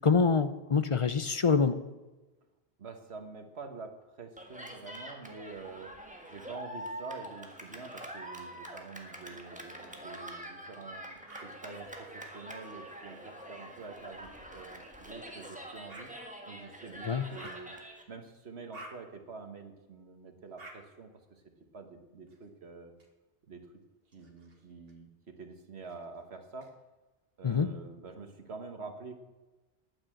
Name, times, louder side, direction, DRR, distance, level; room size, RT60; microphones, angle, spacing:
voice 1, 0.0-1.7 17.1-17.2 27.4-27.7, left 5 dB, 35° left, 11 dB, 0.6 m, -25 dB
voice 2, 2.8-5.9 6.3-16.1 16.5-17.7 18.1-21.4 21.7-22.9 23.5-23.7 24.1-26.7 27.4-29.1, right 4 dB, 85° right, 6 dB, 1.7 m, -47 dB
Cheering, 4.4-18.0, right 1 dB, 5° right, 1.6 m, -45 dB
sound 1, 11.3-11.5 12.3-12.5 14.5-14.7 15.9-16.1 17.3-17.6 18.7-18.9 20.6-20.8 22.3-23.1 24.0-24.9 25.8-26.7, right 2 dB, 65° right, 2.0 m, -50 dB
10.5 x 9.7 x 7.7 m, 1.1 s
omnidirectional pair, 1.1 m